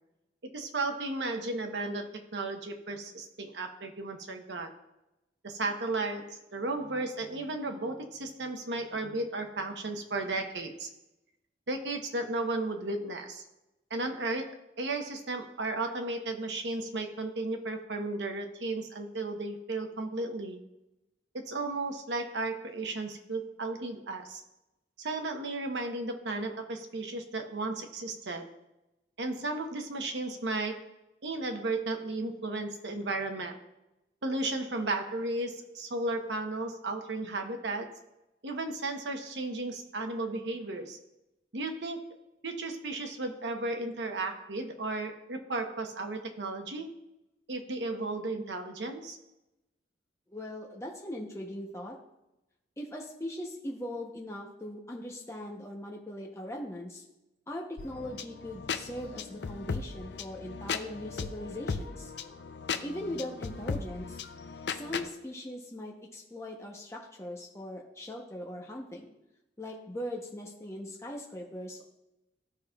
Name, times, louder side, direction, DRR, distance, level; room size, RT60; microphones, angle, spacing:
voice 1, 0.5-4.7 5.4-10.9 11.7-13.4 13.9-20.6 21.5-24.4 25.0-28.5 29.2-30.9 31.2-33.6 34.2-37.9 38.4-41.0 41.5-42.0 42.4-46.9 47.5-49.2, right 2 dB, 75° right, 4 dB, 0.9 m, -34 dB
voice 2, 50.3-52.0 52.8-57.0 57.5-62.1 62.8-64.2 64.7-69.1 69.6-71.8, left 1 dB, 15° left, -1 dB, 0.7 m, -40 dB
sound 1, 57.8-65.1, left 5 dB, 70° left, 0.5 m, -37 dB
14.0 x 5.1 x 2.3 m, 0.94 s
head